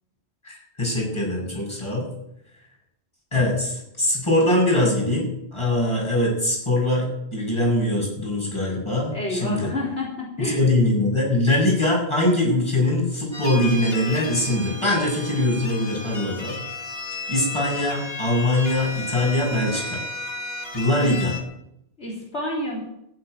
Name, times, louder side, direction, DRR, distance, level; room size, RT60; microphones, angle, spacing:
voice 1, 0.4-2.1 3.3-9.7 10.4-16.6 17.3-20.0 20.7-21.3, left 1 dB, 25° left, -2 dB, 7.5 m, -22 dB
voice 2, 9.1-10.6 22.0-22.8, left 1 dB, 80° left, -4 dB, 4.0 m, -29 dB
sound 1, 13.3-21.4, left 2 dB, 60° left, 2.2 m, -33 dB
15.0 x 8.3 x 9.4 m, 0.79 s
omnidirectional pair, 1.1 m